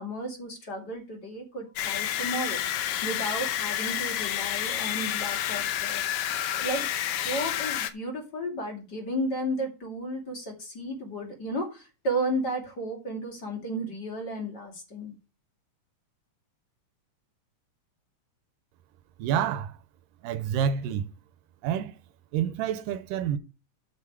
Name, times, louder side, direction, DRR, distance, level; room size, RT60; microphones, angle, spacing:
voice 1, 0.0-2.6 3.0-6.3 6.6-15.1, right 1 dB, 30° left, 2.8 m, -33 dB
sound 1, 1.8-7.9, left 11 dB, 90° left, 2.6 m, -29 dB
voice 2, 19.2-19.8 20.2-21.1 21.6-22.0 22.3-23.4, right 8 dB, 85° right, 2.4 m, -28 dB
13.5 x 5.5 x 4.6 m
omnidirectional pair, 3.8 m